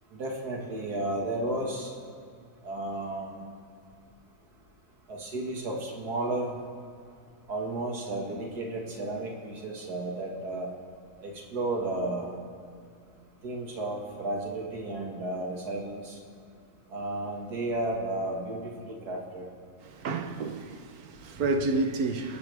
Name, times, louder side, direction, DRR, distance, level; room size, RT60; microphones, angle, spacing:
voice 1, 0.1-1.9 2.6-3.5 5.1-6.5 7.5-10.7 11.2-12.4 13.4-16.2 16.9-19.5, right 2 dB, 90° right, 2.4 m, -33 dB
voice 2, 19.8-22.4, right 3 dB, 75° right, 1.4 m, -30 dB
26.5 x 10.5 x 3.5 m
omnidirectional pair, 1.6 m